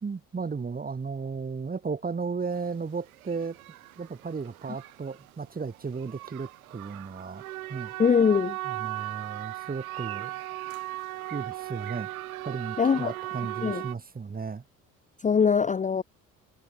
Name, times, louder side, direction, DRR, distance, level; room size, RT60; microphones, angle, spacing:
voice 1, 0.0-3.6 4.0-7.4 7.7-7.9 8.6-10.4 11.3-12.1 12.4-14.6, right 5 dB, 20° right, 1.5 m, -35 dB
sound 1, 2.5-2.7 3.1-13.9, right 16 dB, 75° right, 2.3 m, -38 dB
voice 2, 8.0-8.6 12.8-13.1 13.6-13.8 15.2-16.0, left 6 dB, 20° left, 0.7 m, -22 dB
figure-of-eight pair, 55°, 43 cm